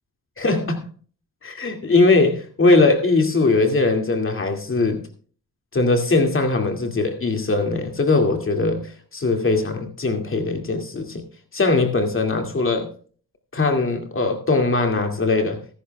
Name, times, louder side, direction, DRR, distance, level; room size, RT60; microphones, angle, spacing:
voice 1, 0.4-0.9 1.4-5.0 5.7-11.2 11.5-12.9 13.5-15.6, left 3 dB, 40° left, 4 dB, 2.3 m, -20 dB
21.0 x 11.5 x 2.3 m, 0.42 s
cardioid pair, 95°, 33 cm